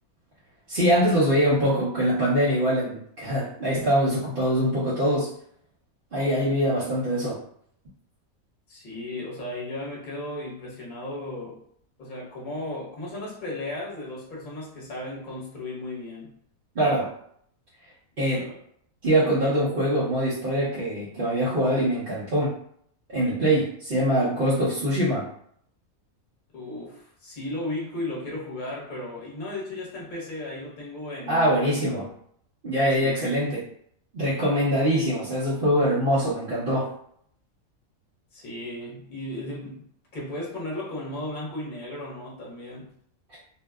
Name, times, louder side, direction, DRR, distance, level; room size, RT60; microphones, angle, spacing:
voice 1, 0.7-5.3 6.1-7.4 16.7-17.1 18.2-18.5 19.0-22.5 23.1-25.3 31.3-32.0 32.6-33.6 34.1-36.9, equal, 50° right, -10 dB, 0.7 m, -23 dB
voice 2, 8.7-11.6 12.0-16.4 18.2-18.6 26.5-32.1 33.0-33.2 38.3-39.9 40.1-42.9, left 1 dB, 40° left, -5 dB, 0.9 m, -35 dB
2.7 x 2.2 x 2.2 m, 0.65 s
omnidirectional pair, 1.5 m